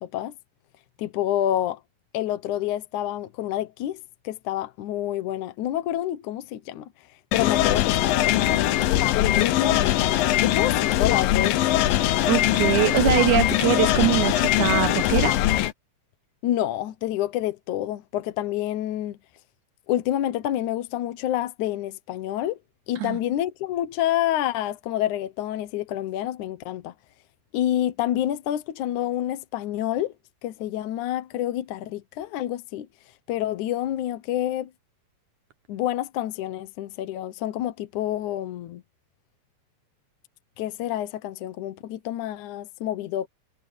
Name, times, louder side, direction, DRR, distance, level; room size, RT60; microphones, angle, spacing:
voice 1, 0.0-0.3 1.0-1.8 2.1-6.9 7.3-11.9 16.4-19.2 19.9-22.6 22.9-26.9 27.5-30.1 30.4-32.9 33.3-34.7 35.7-38.8 40.6-43.3, left 12 dB, 70° left, 2.3 m, -28 dB
sound 1, 7.3-15.7, left 14 dB, 90° left, 2.6 m, -21 dB
voice 2, 12.3-15.3 23.0-23.2, right 12 dB, 75° right, 2.1 m, -22 dB
omnidirectional pair, 3.9 m